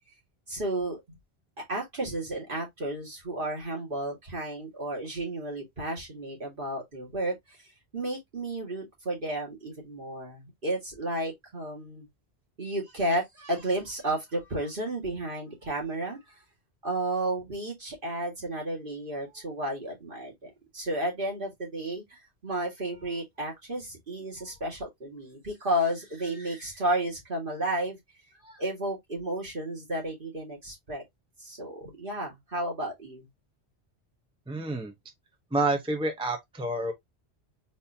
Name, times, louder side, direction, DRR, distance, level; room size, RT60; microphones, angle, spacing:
voice 1, 0.5-1.2 1.7-7.6 7.9-12.1 12.6-16.4 16.8-28.0 28.4-31.0 31.4-33.3, right 1 dB, 50° right, 2.3 m, -32 dB
voice 2, 34.5-34.9 35.5-36.9, right 2 dB, 5° right, 0.7 m, -28 dB
4.2 x 3.7 x 2.8 m
omnidirectional pair, 1.1 m